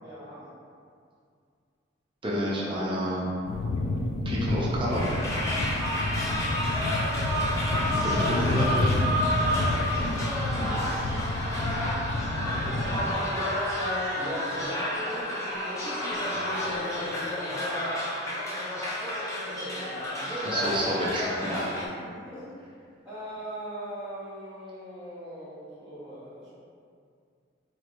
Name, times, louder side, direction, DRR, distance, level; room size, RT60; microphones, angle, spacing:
voice 1, 0.0-0.5 6.3-6.9 9.5-9.9 19.5-21.1 22.1-22.5 23.0-26.5, equal, 5° right, -17 dB, 1.0 m, -40 dB
voice 2, 2.2-3.3 4.2-5.0 8.0-8.9 20.4-21.6, equal, 25° right, -6 dB, 0.6 m, -29 dB
sound 1, 3.5-13.1, left 2 dB, 75° left, 0.4 m, -29 dB
sound 2, 4.8-21.9, left 1 dB, 15° left, 0.6 m, -30 dB
4.2 x 3.2 x 2.5 m, 2.3 s
head